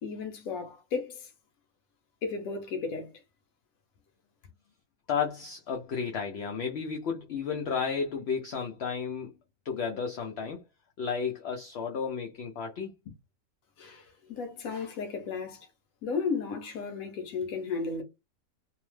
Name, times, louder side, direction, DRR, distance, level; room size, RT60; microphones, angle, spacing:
voice 1, 0.0-1.3 2.2-3.1 13.8-15.7 16.0-18.0, left 5 dB, 90° left, 1.1 m, -34 dB
voice 2, 5.1-9.3 9.6-10.6 11.0-13.1, left 6 dB, 65° left, 0.7 m, -33 dB
2.8 x 2.0 x 3.1 m
omnidirectional pair, 1.4 m